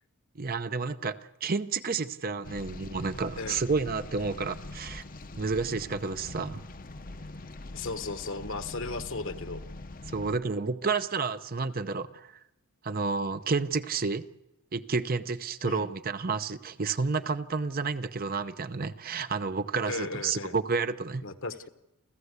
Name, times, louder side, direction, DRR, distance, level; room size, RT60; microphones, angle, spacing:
voice 1, 0.4-5.0 5.4-6.6 10.1-12.3 12.8-14.2 14.7-21.2, right 4 dB, 40° right, 11 dB, 0.7 m, -30 dB
sound 1, 2.4-10.4, left 2 dB, 40° left, 0.8 m, -43 dB
voice 2, 7.7-9.6 15.6-15.9 19.9-20.6 21.2-21.7, left 3 dB, 60° left, 9 dB, 1.3 m, -36 dB
29.5 x 14.0 x 8.2 m, 0.92 s
head